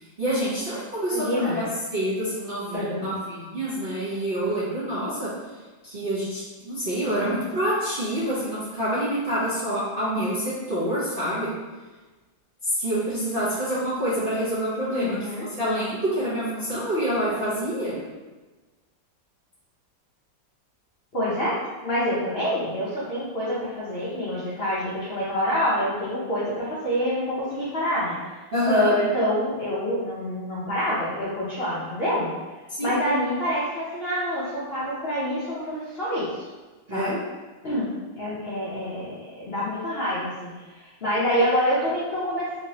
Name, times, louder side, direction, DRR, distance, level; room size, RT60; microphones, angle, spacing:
voice 1, 0.2-1.6 1.9-5.3 5.8-11.5 12.6-18.0 28.5-29.0 32.7-33.0 36.9-37.1, equal, 50° right, -11 dB, 0.6 m, -27 dB
voice 2, 1.1-1.6 2.7-3.1 7.1-7.4 14.9-15.5 21.1-21.6 21.8-28.2 28.7-32.3 32.8-36.3 36.9-37.2 37.6-37.9 38.2-42.6, equal, 70° left, -9 dB, 0.5 m, -26 dB
3.6 x 3.0 x 2.8 m, 1.2 s
omnidirectional pair, 2.1 m